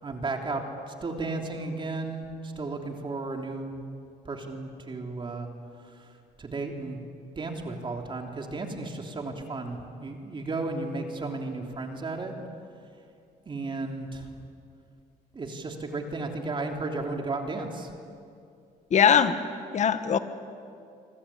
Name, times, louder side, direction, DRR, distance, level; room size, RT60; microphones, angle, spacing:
voice 1, 0.0-3.7 4.2-5.5 6.4-7.0 7.4-12.3 13.5-14.3 15.3-17.9, right 3 dB, 30° right, 3 dB, 3.2 m, -34 dB
voice 2, 18.9-19.4 19.7-20.2, left 7 dB, 45° left, 10 dB, 1.7 m, -20 dB
26.0 x 24.5 x 8.6 m, 2.4 s
cardioid pair, 110°, 17 cm